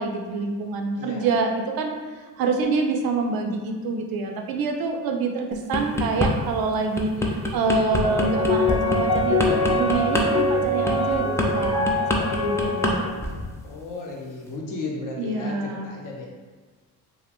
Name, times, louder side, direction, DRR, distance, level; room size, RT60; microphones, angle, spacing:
voice 1, 0.0-11.9 12.2-13.1 15.2-15.9, right 3 dB, 60° right, 3 dB, 0.5 m, -26 dB
voice 2, 0.9-1.3 13.6-16.3, left 3 dB, 50° left, -1 dB, 0.8 m, -34 dB
sound 1, 5.5-6.3 6.7-12.9 13.2-13.5, left 1 dB, 5° left, 0.4 m, -25 dB
sound 2, 8.0-13.1, left 2 dB, 80° left, 0.9 m, -24 dB
2.6 x 2.4 x 3.4 m, 1.4 s
supercardioid pair, 75°, 42 cm